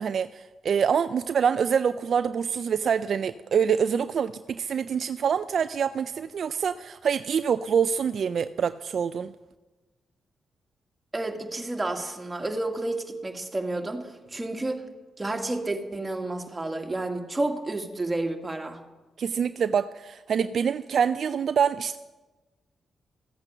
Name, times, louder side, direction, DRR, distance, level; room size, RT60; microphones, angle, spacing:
voice 1, 0.0-9.3 19.2-22.0, right 7 dB, 65° right, 12 dB, 0.4 m, -25 dB
voice 2, 11.1-14.9 15.2-18.8, right 2 dB, 25° right, 3 dB, 2.1 m, -30 dB
14.5 x 8.2 x 6.7 m, 1.2 s
supercardioid pair, 50°, 0 cm